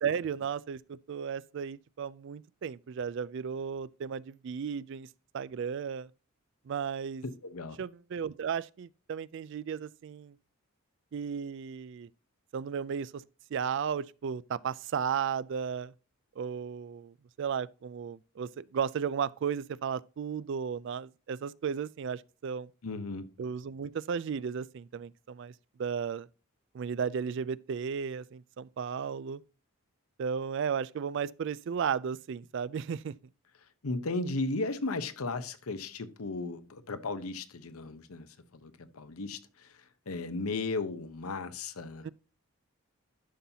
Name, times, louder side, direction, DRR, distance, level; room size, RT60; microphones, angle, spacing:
voice 1, 0.0-5.1 5.3-6.1 6.7-7.2 7.8-10.4 11.1-12.1 12.5-13.2 13.5-15.9 16.4-22.7 23.4-25.5 25.8-26.3 26.7-29.4 30.2-33.1 42.0-42.1, right 7 dB, 55° right, 0.3 m, -34 dB
voice 2, 7.2-7.8 22.8-23.3 33.8-38.3 38.6-42.1, left 3 dB, 85° left, 0.8 m, -35 dB
11.5 x 5.6 x 2.8 m
head